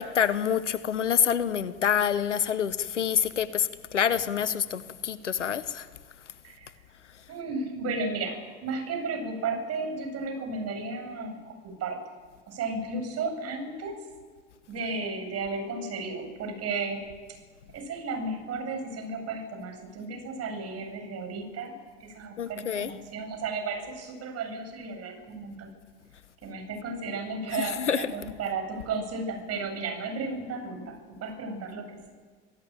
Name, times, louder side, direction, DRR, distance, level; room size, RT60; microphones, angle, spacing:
voice 1, 0.0-5.9 22.4-22.9 27.8-28.0, left 8 dB, 85° left, 16 dB, 1.1 m, -27 dB
voice 2, 7.3-12.0 12.5-14.0 14.7-17.0 17.7-25.8 26.4-32.1, right 3 dB, 45° right, 5 dB, 7.9 m, -34 dB
26.5 x 16.0 x 9.1 m, 1.5 s
figure-of-eight pair, 70°, 35 cm